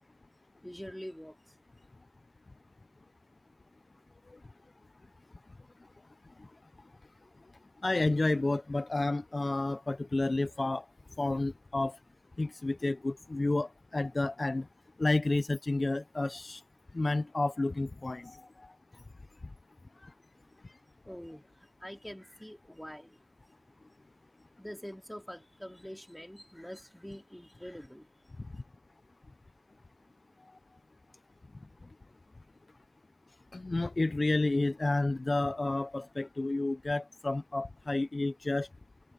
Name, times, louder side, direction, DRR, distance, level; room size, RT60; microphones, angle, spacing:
voice 1, 0.6-1.6 20.5-20.6 21.0-23.2 24.6-28.3, equal, 5° left, 4.3 m, -45 dB
voice 2, 7.8-10.8 11.2-12.0 12.4-14.6 15.0-16.6 16.9-18.7 33.5-38.7, left 2 dB, 55° left, 0.7 m, -30 dB
cardioid pair, 45°, 0 cm